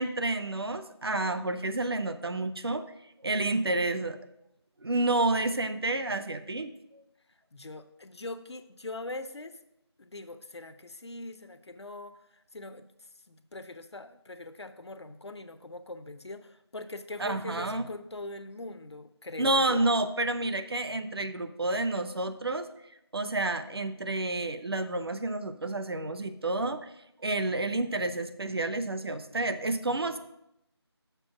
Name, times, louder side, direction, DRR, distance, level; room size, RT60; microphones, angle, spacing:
voice 1, 0.0-2.8 3.2-4.2 4.8-7.0 17.2-17.9 19.4-22.7 23.1-26.9 27.2-30.2, right 2 dB, 60° right, 10 dB, 0.6 m, -29 dB
voice 2, 7.3-9.6 10.0-19.9, left 2 dB, 75° left, 10 dB, 0.6 m, -42 dB
6.8 x 4.1 x 5.9 m, 0.81 s
figure-of-eight pair, 170°, 14 cm